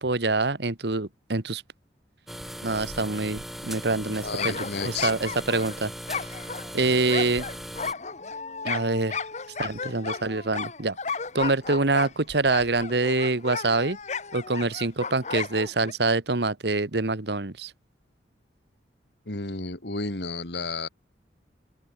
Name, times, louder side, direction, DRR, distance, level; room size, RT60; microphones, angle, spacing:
voice 1, 0.0-1.6 2.6-5.9 6.7-7.5 8.6-9.2 9.6-11.0 11.3-14.0 14.3-17.7, right 3 dB, 65° right, 1.5 m, -25 dB
sound 1, 2.3-7.9, equal, ahead, 4.7 m, -39 dB
voice 2, 4.0-5.1 19.3-20.9, left 3 dB, 65° left, 2.6 m, -32 dB
sound 2, 4.4-15.9, left 5 dB, 40° left, 1.8 m, -34 dB
open air
head